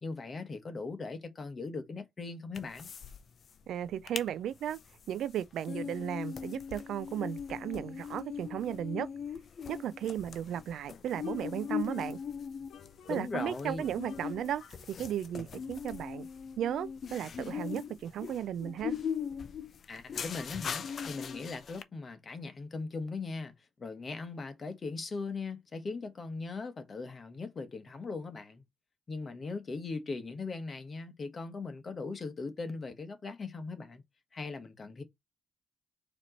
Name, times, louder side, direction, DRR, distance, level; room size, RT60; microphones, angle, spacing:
voice 1, 0.0-2.9 13.1-13.9 19.9-23.5 23.8-28.6 29.1-34.0 34.3-35.0, left 4 dB, 35° left, 1.2 m, -39 dB
sound 1, 2.5-3.2 3.4-3.5 3.9-4.3 4.7-21.8, left 7 dB, 50° left, 0.6 m, -40 dB
voice 2, 3.7-4.8 5.1-9.1 9.7-12.2 13.1-14.6 15.0-16.3 16.6-18.9, right 10 dB, 75° right, 0.4 m, -35 dB
sound 2, 10.8-12.3 12.7-14.9, left 7 dB, 70° left, 1.0 m, -56 dB
4.3 x 2.9 x 4.0 m
cardioid pair, 90°, 0 cm